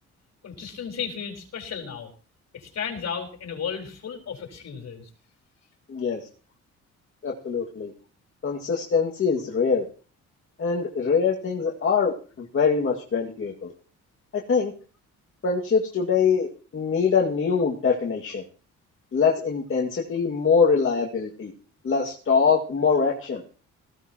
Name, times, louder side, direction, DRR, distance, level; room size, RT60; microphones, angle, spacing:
voice 1, 0.4-2.1 2.5-5.1, left 7 dB, 60° left, 3 dB, 4.2 m, -34 dB
voice 2, 5.9-6.2 7.2-7.9 8.4-9.9 10.6-12.1 12.5-13.7 14.3-14.7 15.4-18.4 19.1-21.5 21.8-23.4, left 5 dB, 45° left, -1 dB, 2.2 m, -23 dB
19.0 x 16.0 x 3.0 m, 0.39 s
cardioid pair, 90°, 30 cm